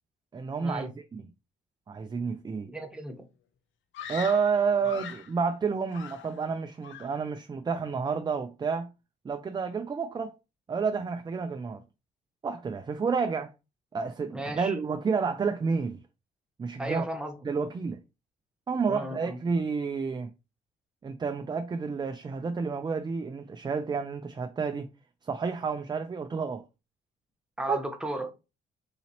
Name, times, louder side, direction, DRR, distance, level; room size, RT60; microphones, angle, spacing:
voice 1, 0.3-1.2 1.9-2.7 4.1-8.9 9.2-10.3 10.7-11.8 12.4-13.5 13.9-16.0 16.6-17.0 17.4-18.0 18.7-20.3 21.0-24.9 25.3-26.6 27.7-27.8, right 5 dB, 20° right, 0.3 m, -30 dB
voice 2, 2.7-3.2 4.9-5.0 14.3-14.8 16.8-17.4 18.9-19.4 27.6-28.3, right 1 dB, 5° right, 1.0 m, -35 dB
Screaming, 3.9-5.4 5.9-6.6 6.8-7.3, left 8 dB, 75° left, 0.5 m, -42 dB
4.0 x 2.8 x 2.9 m
cardioid pair, 90°, 20 cm